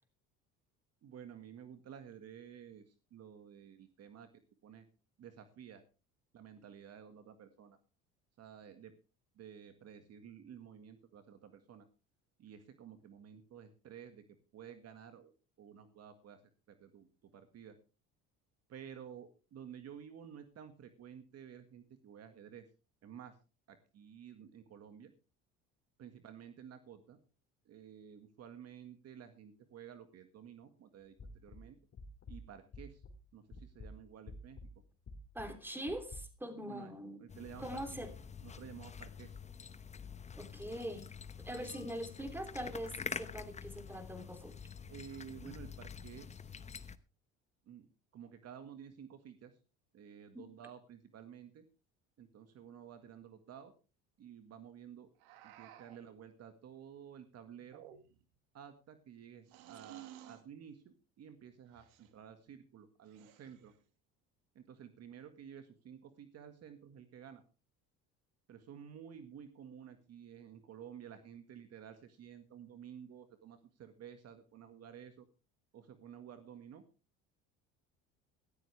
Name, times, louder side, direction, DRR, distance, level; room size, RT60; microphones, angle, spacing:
voice 1, 1.0-4.3 4.6-4.9 5.2-5.8 6.3-7.8 8.4-8.9 9.4-11.9 12.4-14.2 14.5-15.3 15.6-16.4 16.7-17.8 18.7-22.7 23.0-23.4 23.7-25.1 26.0-27.2 27.7-31.8 32.3-33.0 33.3-34.7 36.6-36.9 37.2-37.8 38.4-39.4 44.9-46.5 47.7-47.9 48.1-49.6 49.9-51.6 52.2-53.7 54.2-55.1 55.4-57.8 58.5-63.7 64.6-67.4 68.5-75.3 75.7-76.8, right 8 dB, 50° right, 8 dB, 1.8 m, -52 dB
sound 1, 31.2-33.3 33.5-36.2, left 2 dB, 40° left, 3.5 m, -50 dB
voice 2, 35.3-37.2 37.6-38.1 40.4-41.1 41.4-44.5 45.4-45.5, right 1 dB, 5° right, 6 dB, 3.1 m, -42 dB
sound 2, 37.3-47.0, left 6 dB, 20° left, 0.9 m, -47 dB
sound 3, 55.2-56.1 57.6-58.3 59.5-60.5 61.7-62.1 63.0-63.8, right 12 dB, 85° right, 1.8 m, -55 dB
16.5 x 13.5 x 3.4 m, 0.33 s
supercardioid pair, 100°, 32 cm